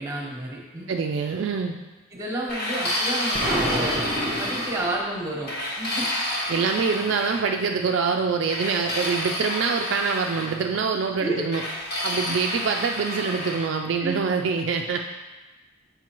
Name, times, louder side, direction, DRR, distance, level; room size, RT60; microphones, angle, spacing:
voice 1, 0.0-0.9 2.1-4.0 4.4-6.0 11.2-11.4 12.3-12.4 14.0-14.2, right 1 dB, 15° right, -3 dB, 1.1 m, -31 dB
voice 2, 0.9-1.8 6.5-11.6 12.0-15.0, right 5 dB, 55° right, 3 dB, 0.3 m, -25 dB
sound 1, 2.5-5.0 5.5-7.4 8.5-10.5 11.5-13.6, left 1 dB, 45° left, 1.4 m, -29 dB
Explosion, 3.3-5.2, right 1 dB, 35° right, 0.7 m, -28 dB
7.3 x 5.2 x 3.0 m, 1.2 s
head